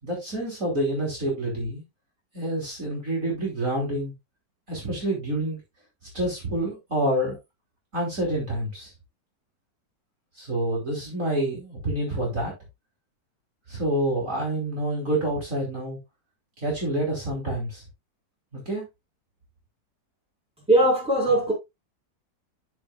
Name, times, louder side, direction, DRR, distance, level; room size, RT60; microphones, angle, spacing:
voice 1, 0.0-1.8 2.3-4.1 4.7-5.6 6.1-7.4 7.9-8.9 10.4-12.5 13.7-16.0 16.6-17.8 18.5-18.8, right 1 dB, 45° right, 3.7 m, -27 dB
voice 2, 20.7-21.5, right 1 dB, 5° right, 4.7 m, -20 dB
13.0 x 5.0 x 2.4 m
omnidirectional pair, 1.9 m